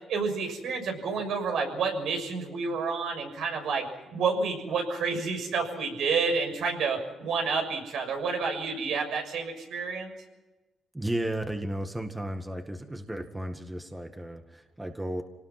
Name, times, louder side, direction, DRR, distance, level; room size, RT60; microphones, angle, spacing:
voice 1, 0.1-10.1, right 4 dB, 75° right, 3 dB, 6.6 m, -29 dB
voice 2, 10.9-15.2, right 1 dB, 10° right, 6 dB, 1.9 m, -34 dB
26.0 x 19.0 x 6.0 m, 1.1 s
cardioid pair, 90°, 0 cm